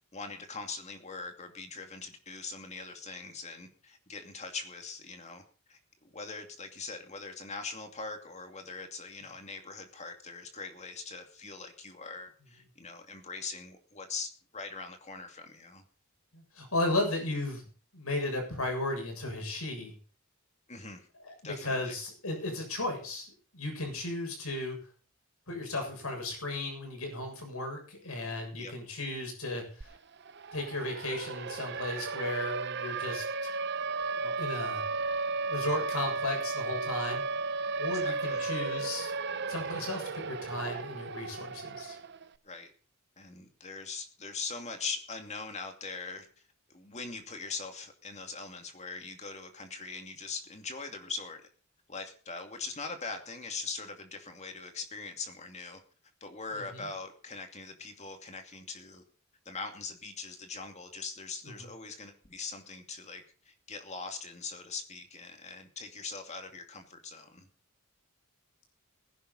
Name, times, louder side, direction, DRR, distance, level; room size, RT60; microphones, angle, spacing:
voice 1, 0.1-5.4 5.7-15.8 20.7-21.1 21.4-21.9 28.6-28.7 37.9-38.4 42.4-42.7 43.2-46.3 46.7-51.4 51.9-55.8 56.2-59.0 59.5-67.5, left 4 dB, 30° left, 5 dB, 2.5 m, -42 dB
voice 2, 16.3-17.6 17.9-20.0 21.2-24.8 25.5-29.9 30.5-33.5 34.1-34.8 35.5-37.2 37.8-39.1 39.5-42.0 56.5-56.9 61.6-61.7, left 2 dB, 80° left, 3 dB, 7.3 m, -35 dB
Siren, 29.8-29.9 30.2-42.2, right 4 dB, 50° right, 0.8 m, -34 dB
19.0 x 11.5 x 4.2 m, 0.38 s
head